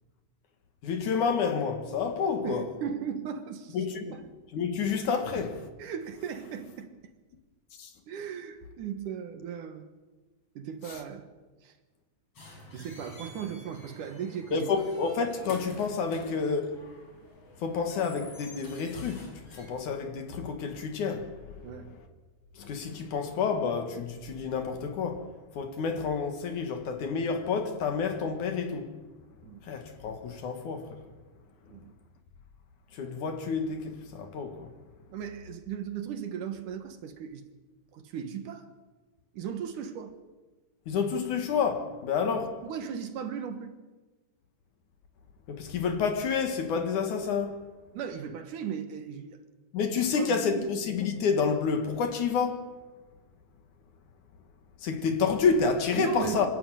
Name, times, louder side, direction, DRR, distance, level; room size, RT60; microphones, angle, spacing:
voice 1, 0.8-2.7 3.7-4.1 4.5-5.7 7.8-7.9 10.9-11.0 14.5-16.9 17.6-21.7 22.6-25.3 25.6-28.9 29.6-31.0 32.9-34.7 40.9-42.6 45.5-47.7 49.7-52.8 54.8-56.5, left 5 dB, 60° left, 3.0 m, -29 dB
voice 2, 2.4-3.9 4.1-4.2 5.8-6.9 8.1-9.9 10.6-11.3 11.6-11.7 12.7-14.7 21.6-21.9 29.4-29.6 31.7-31.9 35.1-37.5 37.9-38.7 39.3-40.2 42.3-43.7 47.9-49.4 50.1-50.7 56.0-56.5, right 8 dB, 65° right, 2.7 m, -37 dB
sound 1, 12.4-19.7, left 2 dB, 40° left, 5.5 m, -49 dB
25.5 x 13.0 x 9.1 m
omnidirectional pair, 4.1 m